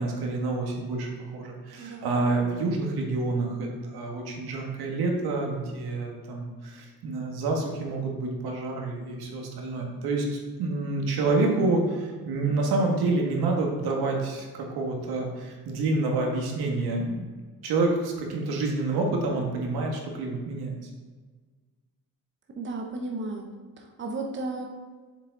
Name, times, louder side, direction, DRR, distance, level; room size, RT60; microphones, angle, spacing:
voice 1, 0.0-17.2 17.6-20.8, right 3 dB, 85° right, 0 dB, 1.8 m, -28 dB
voice 2, 1.8-2.2 22.5-23.5 23.8-24.7, right 2 dB, 30° right, 1 dB, 1.0 m, -34 dB
7.2 x 7.1 x 4.0 m, 1.4 s
cardioid pair, 140°, 37 cm